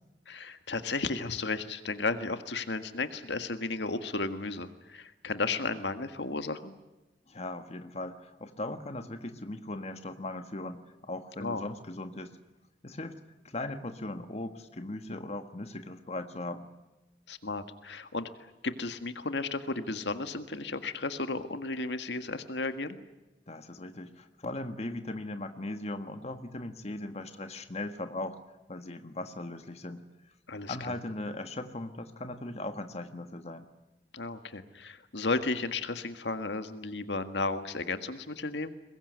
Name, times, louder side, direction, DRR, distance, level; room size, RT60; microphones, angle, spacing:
voice 1, 0.3-6.7 11.4-11.6 17.3-23.0 30.5-30.8 34.1-38.7, left 3 dB, 80° left, 9 dB, 1.7 m, -34 dB
voice 2, 7.3-12.3 12.8-16.7 23.5-28.4 28.7-30.0 30.7-33.7, left 2 dB, 40° left, 8 dB, 1.6 m, -38 dB
23.0 x 21.0 x 9.5 m, 1.0 s
head